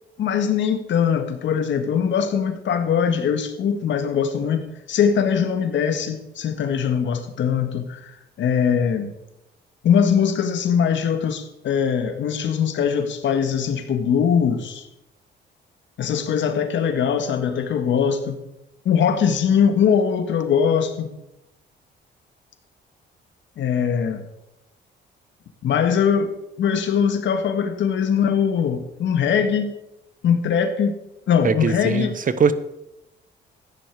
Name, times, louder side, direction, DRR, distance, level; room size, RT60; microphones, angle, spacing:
voice 1, 0.2-9.1 9.8-14.8 16.0-18.4 18.9-21.1 23.6-24.2 25.6-26.3 26.6-29.7 30.2-31.0 31.3-32.1, left 7 dB, 70° left, 8 dB, 1.7 m, -21 dB
voice 2, 31.4-32.5, right 6 dB, 45° right, 13 dB, 1.1 m, -21 dB
14.5 x 9.8 x 4.9 m, 0.87 s
cardioid pair, 90°, 20 cm